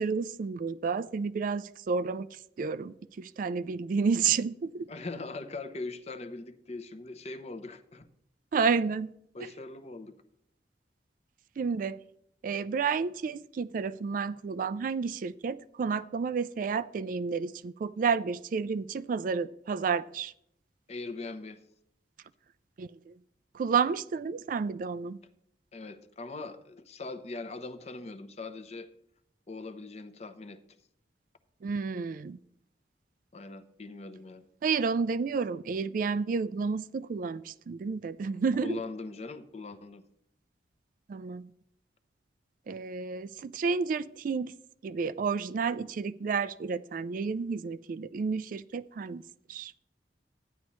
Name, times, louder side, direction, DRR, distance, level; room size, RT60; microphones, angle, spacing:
voice 1, 0.0-2.3 2.6-4.9 8.5-9.1 9.4-9.5 11.6-12.0 12.4-20.3 22.8-23.1 23.5-25.2 31.6-32.4 34.6-38.8 41.1-41.5 42.7-44.5 44.8-49.2 49.5-49.7, right 5 dB, 50° right, 0.3 m, -31 dB
voice 2, 4.9-8.1 9.3-10.1 20.9-21.6 25.7-28.9 29.5-30.6 33.3-34.5 38.6-40.0, left 3 dB, 35° left, 0.7 m, -41 dB
14.0 x 9.8 x 3.1 m
head